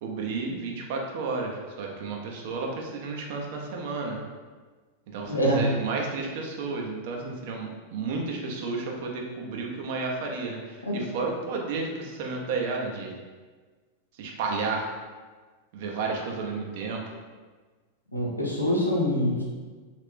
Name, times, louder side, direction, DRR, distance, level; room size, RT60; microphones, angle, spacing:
voice 1, 0.0-4.2 5.1-13.1 14.2-14.9 15.7-17.0, right 4 dB, 50° right, 0 dB, 0.6 m, -32 dB
voice 2, 5.3-5.6 10.9-11.0 18.1-19.4, equal, 85° left, -5 dB, 0.7 m, -25 dB
3.1 x 2.4 x 3.5 m, 1.4 s
figure-of-eight pair, 90°, 0 cm